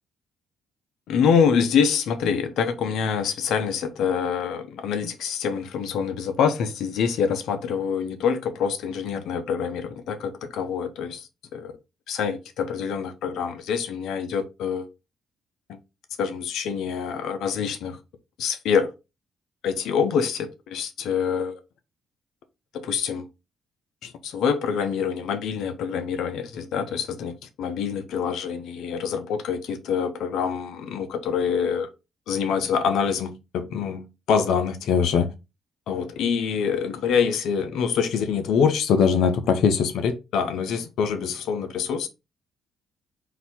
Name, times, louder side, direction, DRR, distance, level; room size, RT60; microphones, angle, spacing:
voice 1, 1.1-11.7 12.1-14.9 15.7-15.8 16.2-18.0 18.4-18.9 19.6-21.5 22.7-23.3 24.0-31.9 32.3-35.3 35.9-42.1, left 6 dB, 80° left, 0.8 m, -25 dB
4.0 x 2.8 x 4.2 m
cardioid pair, 90°, 0 cm